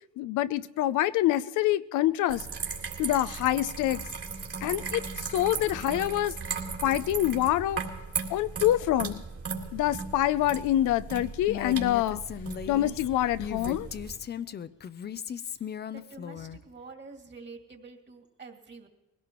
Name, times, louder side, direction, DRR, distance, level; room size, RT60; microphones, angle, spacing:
voice 1, 0.2-2.5 3.0-4.0 4.6-6.4 6.8-7.8 8.3-9.2 9.7-12.2 12.7-13.9, left 13 dB, 85° left, 14 dB, 0.5 m, -26 dB
sound 1, 2.3-14.2, right 5 dB, 50° right, 3.1 m, -37 dB
Female speech woman speaking, 11.5-16.6, left 8 dB, 35° left, 0.5 m, -37 dB
voice 2, 15.4-18.9, right 4 dB, 35° right, 2 dB, 2.3 m, -48 dB
21.0 x 17.0 x 3.0 m, 1.1 s
cardioid pair, 90°, 30 cm